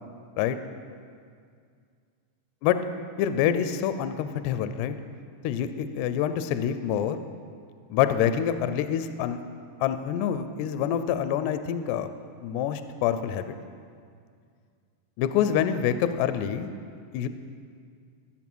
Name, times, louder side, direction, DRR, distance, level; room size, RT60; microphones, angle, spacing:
voice 1, 3.2-5.0 5.4-7.2 7.9-9.4 9.8-12.1 12.4-13.5 15.2-16.7 17.1-17.3, left 9 dB, 85° left, 11 dB, 2.4 m, -26 dB
14.5 x 7.2 x 6.1 m, 2.2 s
omnidirectional pair, 5.3 m